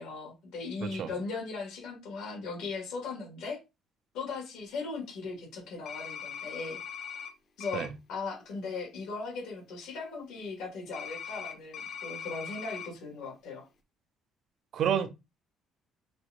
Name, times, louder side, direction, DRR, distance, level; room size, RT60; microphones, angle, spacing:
voice 1, 0.0-3.6 4.1-6.8 7.6-13.7, left 4 dB, 80° left, 2.7 m, -38 dB
voice 2, 0.8-1.1 7.7-7.9 14.7-15.1, right 8 dB, 50° right, 0.6 m, -29 dB
sound 1, 5.8-7.3 7.6-7.9 10.9-12.9, left 7 dB, 50° left, 1.1 m, -40 dB
6.2 x 2.8 x 3.0 m
cardioid pair, 155°, 0 cm